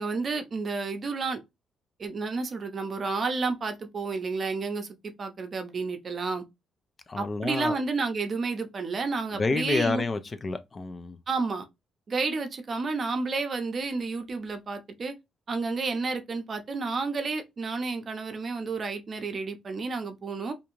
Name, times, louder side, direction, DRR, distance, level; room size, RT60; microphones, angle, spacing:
voice 1, 0.0-1.4 2.0-6.4 7.2-10.1 11.3-11.6 12.1-15.1 15.5-20.5, right 4 dB, 45° right, 0.6 m, -31 dB
voice 2, 7.1-7.8 9.4-11.2, left 3 dB, 35° left, 0.4 m, -29 dB
2.5 x 2.3 x 3.0 m
cardioid pair, 90°, 0 cm